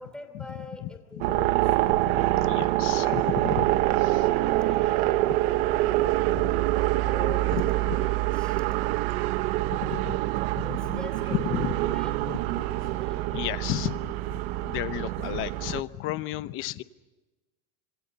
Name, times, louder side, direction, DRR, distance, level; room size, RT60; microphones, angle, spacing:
voice 1, 0.0-2.1 4.4-5.6 6.8-8.7 10.6-13.5 14.6-14.8, left 2 dB, ahead, 6 dB, 3.0 m, -45 dB
voice 2, 0.8-1.3 2.1-4.3 5.3-5.4 6.3-6.8 7.5-8.1 9.7-10.2 10.6-11.0 11.3-11.7 12.3-12.4 13.3-16.8, left 15 dB, 30° left, 14 dB, 0.8 m, -34 dB
sound 1, 1.2-15.8, right 17 dB, 50° right, 1.0 m, -25 dB
27.0 x 26.5 x 7.0 m, 1.1 s
supercardioid pair, 170°, 39 cm